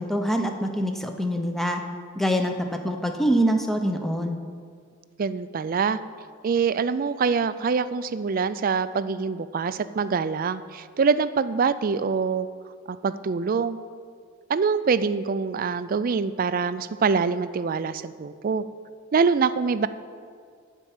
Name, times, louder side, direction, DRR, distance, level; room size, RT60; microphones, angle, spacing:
voice 1, 0.0-1.8 2.2-4.4, equal, ahead, 4 dB, 0.7 m, -25 dB
voice 2, 5.2-6.0 6.4-12.5 12.9-13.8 14.5-18.6 19.1-19.9, right 5 dB, 45° right, 14 dB, 0.4 m, -24 dB
12.5 x 4.5 x 8.4 m, 2.1 s
head